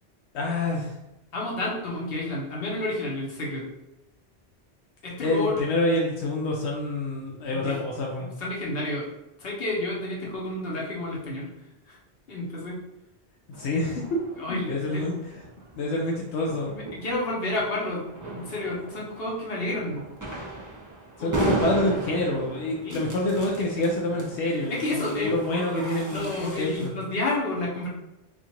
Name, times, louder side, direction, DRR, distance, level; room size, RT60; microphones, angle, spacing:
voice 1, 0.3-0.9 5.2-8.3 13.6-14.0 14.5-15.2 15.8-16.7 21.2-27.0, left 1 dB, 85° left, -2 dB, 0.9 m, -27 dB
voice 2, 1.3-3.7 5.0-5.6 7.5-7.7 8.2-9.1 9.4-11.5 11.9-12.0 12.3-12.8 14.4-15.1 16.7-20.1 21.2-21.4 22.8-23.1 24.7-25.3 26.1-27.9, left 2 dB, 60° left, -4 dB, 1.2 m, -30 dB
sound 1, 13.5-26.9, right 2 dB, 20° right, 0.7 m, -36 dB
4.4 x 2.5 x 2.9 m, 0.95 s
omnidirectional pair, 1.1 m